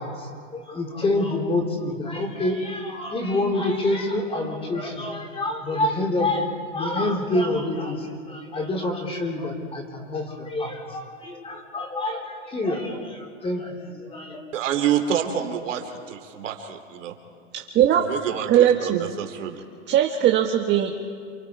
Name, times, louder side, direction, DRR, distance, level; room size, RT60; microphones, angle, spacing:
voice 1, 0.0-14.4, left 2 dB, 15° left, 2 dB, 3.9 m, -27 dB
voice 2, 14.5-17.1 18.0-19.6, right 9 dB, 75° right, 5 dB, 3.2 m, -27 dB
voice 3, 17.5-18.1 18.5-19.1 19.9-21.0, right 10 dB, 30° right, 3 dB, 1.6 m, -19 dB
28.5 x 23.0 x 4.8 m, 2.2 s
hypercardioid pair, 130°, 38 cm